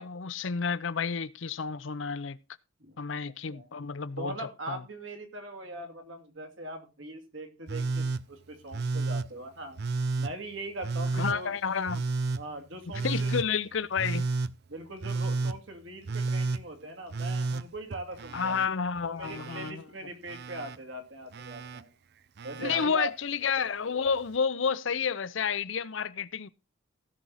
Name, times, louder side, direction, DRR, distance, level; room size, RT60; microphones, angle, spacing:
voice 1, 0.0-2.4 3.0-4.8 11.1-12.0 13.0-14.3 18.3-19.8 22.6-26.5, left 6 dB, 70° left, 0.6 m, -30 dB
voice 2, 4.2-9.8 10.2-11.5 12.3-13.3 14.7-18.6 19.0-21.9 22.4-23.1, right 2 dB, 75° right, 2.6 m, -41 dB
Telephone, 7.7-8.2 8.7-9.3 9.8-10.3 10.8-11.4 11.9-12.4 12.9-13.5 14.0-14.5 15.0-15.6 16.1-16.6 17.1-18.7 19.0-19.7 20.3-20.8 21.3-21.8 22.4-22.9 24.1-24.2, right 3 dB, 55° right, 0.6 m, -31 dB
16.0 x 6.2 x 4.1 m
head